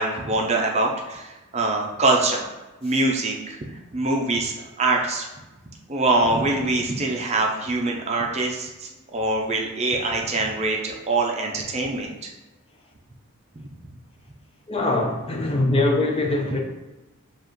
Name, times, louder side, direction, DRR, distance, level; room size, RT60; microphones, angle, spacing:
voice 1, 0.0-2.5 2.8-3.6 3.9-5.3 5.9-12.3 13.6-13.7, right 2 dB, 30° right, 0.5 m, -24 dB
voice 2, 14.7-16.6, left 2 dB, 25° left, 0.5 m, -22 dB
7.0 x 2.4 x 3.1 m
head